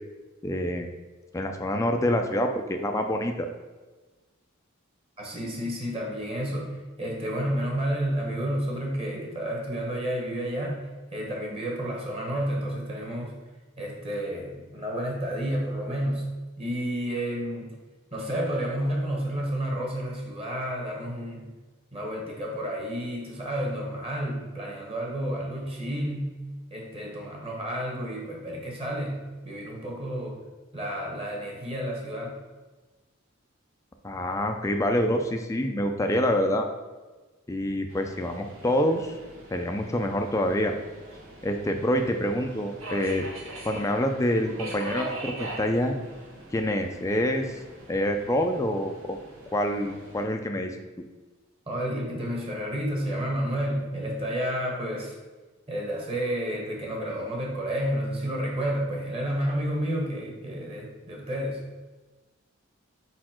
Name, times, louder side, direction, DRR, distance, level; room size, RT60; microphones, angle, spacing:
voice 1, 0.4-0.9 1.3-3.5 34.0-36.7 37.5-39.1 39.5-40.7 41.4-43.3 43.6-46.0 46.5-47.5 47.9-49.2 49.5-50.8, left 1 dB, 15° left, 4 dB, 0.4 m, -26 dB
voice 2, 5.2-13.4 13.8-16.3 16.6-17.7 18.1-21.5 21.9-26.4 26.7-30.4 30.7-32.4 51.7-55.1 55.7-61.6, equal, 30° right, -1 dB, 1.4 m, -31 dB
Subway metro underground, 37.9-50.3, right 2 dB, 75° right, 1.4 m, -42 dB
5.0 x 4.3 x 4.4 m, 1.2 s
head